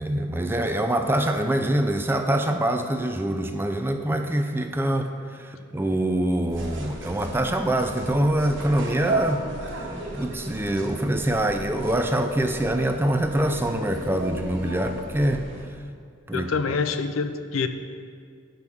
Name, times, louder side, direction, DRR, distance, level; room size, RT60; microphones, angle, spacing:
voice 1, 0.0-9.4 10.1-15.5 16.3-16.5, right 1 dB, 10° right, 6 dB, 0.4 m, -24 dB
sound 1, 6.5-15.6, right 2 dB, 65° right, 1.2 m, -34 dB
voice 2, 16.3-17.7, left 5 dB, 90° left, 8 dB, 0.5 m, -26 dB
6.2 x 5.3 x 6.7 m, 2.1 s
head